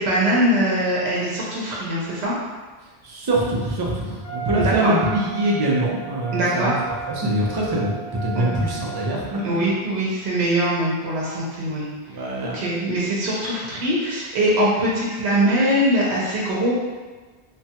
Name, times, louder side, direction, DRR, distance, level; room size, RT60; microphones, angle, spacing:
voice 1, 0.0-2.3 4.6-4.9 6.3-6.7 8.3-8.4 9.4-11.9 12.5-16.7, right 1 dB, 80° right, -5 dB, 0.9 m, -22 dB
voice 2, 3.0-6.8 7.1-7.9 8.2-9.6 12.1-12.6, right 1 dB, 35° right, -4 dB, 0.4 m, -23 dB
Wind instrument woodwind instrument, 4.2-9.5, right 6 dB, 80° left, 1.2 m, -34 dB
3.1 x 2.2 x 2.7 m, 1.3 s
omnidirectional pair, 1.1 m